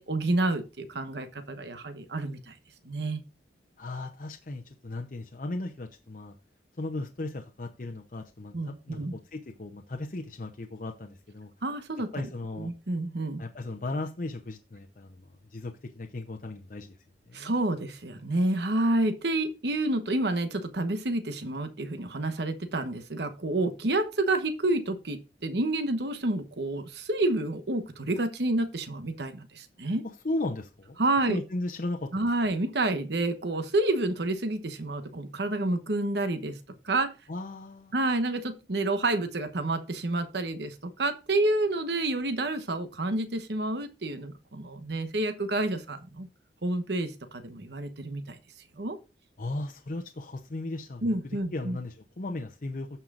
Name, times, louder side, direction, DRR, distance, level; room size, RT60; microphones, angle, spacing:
voice 1, 0.0-2.5 2.8-3.2 8.5-9.2 11.6-12.1 12.6-13.4 17.3-30.0 31.0-31.4 32.1-36.6 36.8-37.1 37.9-46.3 46.6-48.4 48.8-49.0 51.0-51.8, right 2 dB, 70° right, 8 dB, 1.1 m, -29 dB
voice 2, 3.8-6.3 6.8-11.5 12.1-12.7 13.4-17.0 17.3-17.5 30.0-31.0 31.3-32.3 37.3-37.9 49.4-53.0, left 2 dB, 50° left, 4 dB, 0.8 m, -36 dB
15.0 x 5.6 x 2.5 m, 0.29 s
head